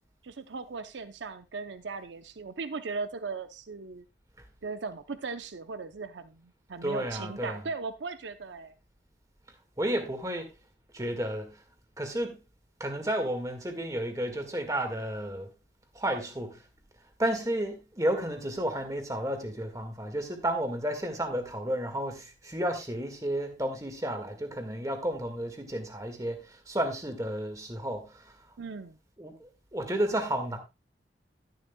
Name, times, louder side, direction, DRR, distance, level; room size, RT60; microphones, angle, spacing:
voice 1, 0.2-4.0 4.6-8.8 28.6-29.0, right 4 dB, 85° right, 0.7 m, -38 dB
voice 2, 6.8-7.6 9.8-10.5 10.9-11.6 12.0-12.4 12.8-15.5 15.9-16.6 17.2-28.4 29.2-30.6, right 1 dB, 20° right, 1.7 m, -32 dB
12.0 x 10.5 x 2.2 m
head